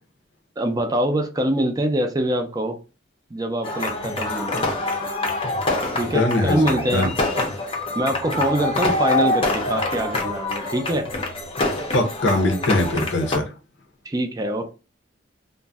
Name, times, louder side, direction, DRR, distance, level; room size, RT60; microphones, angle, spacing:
voice 1, 0.6-2.8 3.3-4.7 6.0-7.4 7.9-11.1 14.1-14.7, right 1 dB, 20° right, 0.4 m, -24 dB
sound 1, 3.6-13.4, left 2 dB, 30° left, 0.6 m, -25 dB
voice 2, 6.1-7.1 11.9-13.4, left 2 dB, 85° left, 0.7 m, -21 dB
2.5 x 2.0 x 3.4 m
head